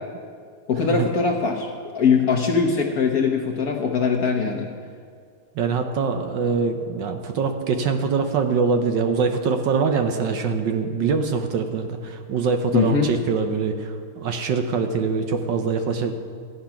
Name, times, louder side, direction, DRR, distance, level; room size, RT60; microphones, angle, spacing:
voice 1, 0.7-4.7 12.7-13.1, left 5 dB, 60° left, 2 dB, 1.1 m, -21 dB
voice 2, 5.6-16.1, right 5 dB, 65° right, 6 dB, 1.3 m, -23 dB
14.0 x 9.2 x 5.8 m, 2.1 s
omnidirectional pair, 2.3 m